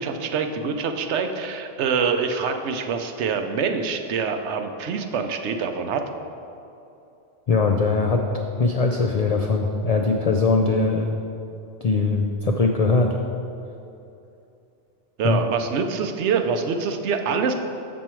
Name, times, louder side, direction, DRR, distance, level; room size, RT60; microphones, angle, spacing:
voice 1, 0.0-6.0 15.2-17.5, right 5 dB, 75° right, 6 dB, 0.9 m, -25 dB
voice 2, 7.5-8.3 8.6-11.2 11.8-13.2 15.2-15.4, left 3 dB, 65° left, 2 dB, 0.3 m, -21 dB
7.1 x 6.2 x 4.5 m, 2.7 s
omnidirectional pair, 1.2 m